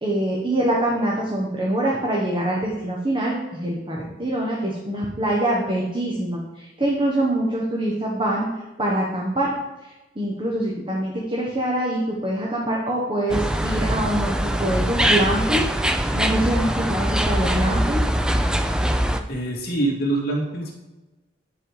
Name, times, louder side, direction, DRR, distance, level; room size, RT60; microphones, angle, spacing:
voice 1, 0.0-8.5 8.8-9.5 10.1-15.7 16.1-18.0, right 1 dB, 30° right, -4 dB, 1.4 m, -24 dB
sound 1, 13.3-19.2, equal, 5° right, 0.4 m, -22 dB
voice 2, 19.3-20.7, right 2 dB, 55° left, -2 dB, 2.2 m, -24 dB
10.0 x 4.7 x 4.9 m, 1.1 s
head